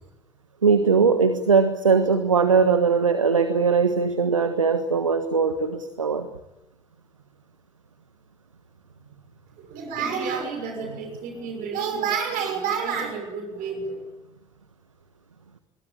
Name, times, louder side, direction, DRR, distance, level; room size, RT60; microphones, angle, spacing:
voice 1, 0.6-6.3, right 5 dB, 85° right, 10 dB, 1.3 m, -20 dB
voice 2, 9.6-14.0, right 6 dB, 60° right, 4 dB, 6.5 m, -29 dB
27.0 x 22.5 x 8.8 m, 0.97 s
figure-of-eight pair, 50°, 16 cm